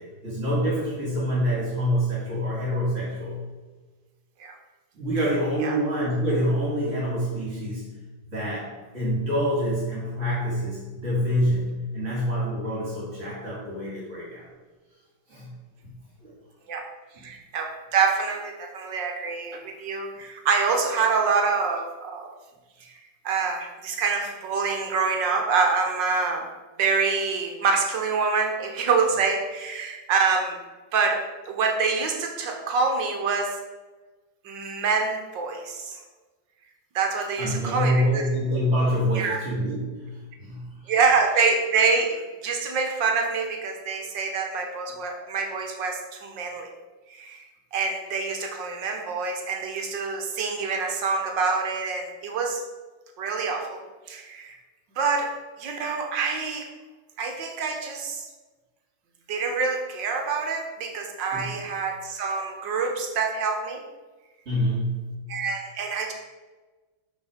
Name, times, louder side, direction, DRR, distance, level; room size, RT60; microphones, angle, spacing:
voice 1, 0.0-3.4 4.9-7.9 8.3-14.5 15.3-15.6 16.2-16.3 17.1-17.2 37.4-40.9 61.3-61.5 64.5-65.2, equal, 40° right, -5 dB, 2.4 m, -26 dB
voice 2, 17.2-22.3 23.3-26.4 26.8-30.6 30.9-31.2 31.5-33.5 34.5-36.0 37.0-38.3 39.2-39.4 40.9-46.7 47.1-47.4 47.7-52.6 53.2-53.8 54.1-54.6 55.0-55.3 55.6-56.7 57.2-58.3 59.3-63.8 65.3-66.1, right 5 dB, 70° right, 3 dB, 1.7 m, -26 dB
6.5 x 6.2 x 5.0 m, 1.3 s
omnidirectional pair, 2.1 m